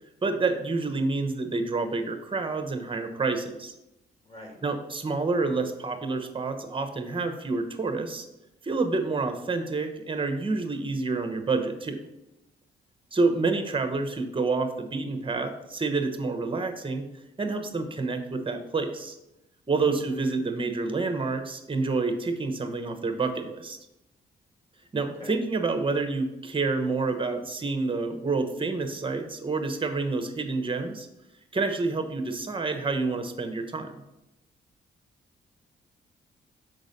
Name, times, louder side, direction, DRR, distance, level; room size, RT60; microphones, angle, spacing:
voice 1, 0.2-3.7 4.6-8.3 8.6-12.0 13.1-17.1 17.4-19.2 19.7-23.8 24.9-31.1 31.5-33.9, right 3 dB, 30° right, 7 dB, 1.0 m, -28 dB
voice 2, 4.2-4.6 13.4-13.8 19.7-20.0 25.0-25.4, left 1 dB, 35° left, 0 dB, 2.2 m, -46 dB
5.9 x 4.0 x 5.2 m, 0.94 s
supercardioid pair, 65°, 19 cm